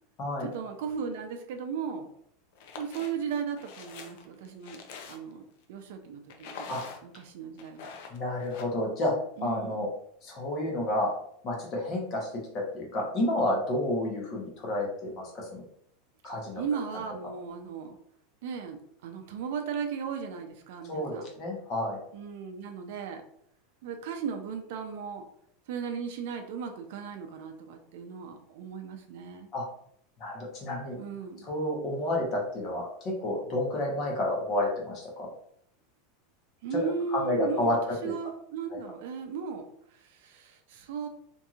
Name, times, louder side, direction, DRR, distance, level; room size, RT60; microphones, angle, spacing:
voice 1, 0.4-2.1 2.8-4.8 5.1-7.9 9.4-9.8 16.2-18.0 18.4-21.3 22.1-23.2 23.8-25.2 25.7-29.5 31.0-31.5 36.6-41.1, right 6 dB, 65° right, 5 dB, 0.4 m, -36 dB
sound 1, 2.5-3.1 3.6-5.4 6.3-7.2 7.6-8.6, left 5 dB, 60° left, 0.4 m, -44 dB
voice 2, 8.1-9.1 9.4-9.9 10.2-11.1 11.4-12.3 12.7-15.6 16.2-16.6 20.9-22.0 29.5-29.7 30.2-31.0 31.4-35.3 37.1-37.8, left 1 dB, 30° left, -2 dB, 0.8 m, -30 dB
2.9 x 2.6 x 2.4 m, 0.68 s
supercardioid pair, 170°, 0 cm